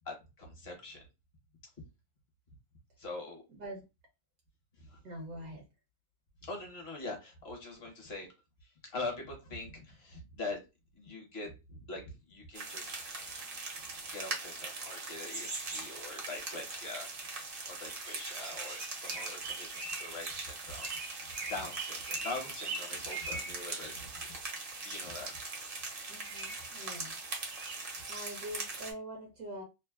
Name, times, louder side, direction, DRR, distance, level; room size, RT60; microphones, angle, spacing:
voice 1, 0.1-1.0 3.0-3.4 4.8-5.0 6.4-8.3 8.6-10.6 10.9-13.2 14.1-20.9 21.2-24.4 24.8-25.3, left 2 dB, 50° left, 1.1 m, -43 dB
voice 2, 5.0-5.6 26.1-27.2 28.1-29.6, equal, 75° right, 1.2 m, -44 dB
sound 1, 12.5-28.9, right 3 dB, 50° right, 0.7 m, -40 dB
3.2 x 2.0 x 2.2 m
omnidirectional pair, 1.6 m